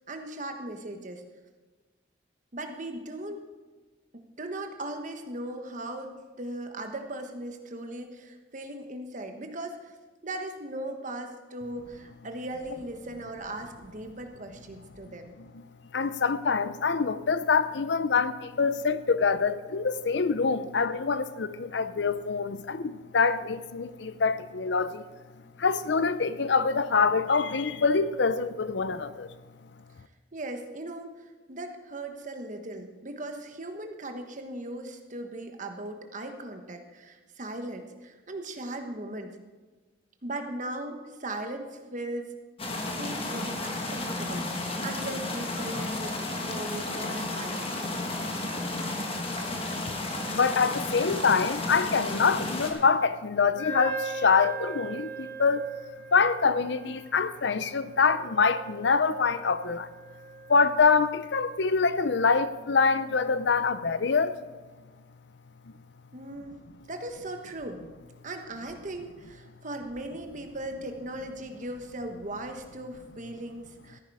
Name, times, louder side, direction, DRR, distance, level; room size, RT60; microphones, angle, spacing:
voice 1, 0.1-1.2 2.5-3.4 4.1-10.0 10.2-15.3 30.3-31.1 31.5-39.3 40.2-42.3 43.0-47.8 66.1-66.6 66.9-67.8 68.2-74.0, right 1 dB, 40° right, 1.3 m, -38 dB
voice 2, 15.9-25.0 25.6-29.3 50.3-55.6 56.1-59.9 60.5-64.3, left 5 dB, 65° left, 0.6 m, -25 dB
sound 1, 42.6-52.7, left 2 dB, 30° left, 1.6 m, -33 dB
Wind instrument woodwind instrument, 53.6-60.9, right 4 dB, 10° left, 2.2 m, -40 dB
14.0 x 10.5 x 4.9 m
head